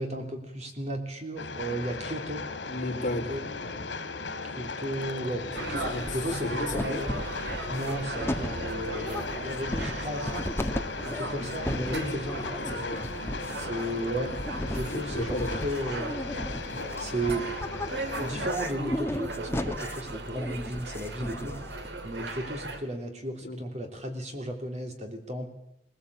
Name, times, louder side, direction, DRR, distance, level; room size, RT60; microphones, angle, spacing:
voice 1, 0.0-2.4 3.3-3.9 4.5-7.0 7.7-10.5 11.0-12.6 13.6-16.4 16.7-17.5 18.2-21.6 22.0-25.5, right 1 dB, 40° right, 4 dB, 3.2 m, -34 dB
Train, 1.4-18.5, left 3 dB, 80° left, 2.6 m, -37 dB
voice 2, 2.7-3.3 5.4-5.5 5.9-6.0 6.4-7.1 11.9-12.2 12.6-13.1 14.9-15.6 23.4-23.6, left 1 dB, 45° left, -1 dB, 4.2 m, -34 dB
sound 1, 4.7-5.3 5.6-6.4 6.7-21.9, left 1 dB, 15° left, 1.1 m, -36 dB
sound 2, 5.5-22.8, right 2 dB, 70° right, 2.2 m, -38 dB
20.5 x 20.0 x 8.4 m, 0.82 s
head